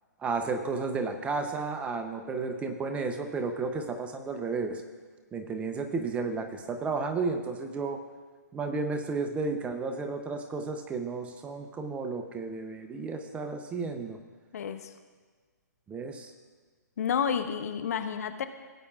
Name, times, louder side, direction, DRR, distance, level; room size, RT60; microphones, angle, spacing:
voice 1, 0.2-4.8 5.3-8.0 8.5-14.2 15.9-16.3, right 4 dB, 15° right, 6 dB, 0.7 m, -32 dB
voice 2, 14.5-14.9 17.0-18.4, left 7 dB, 60° left, 9 dB, 0.8 m, -30 dB
17.5 x 8.5 x 2.4 m, 1.5 s
hypercardioid pair, 135°, 10 cm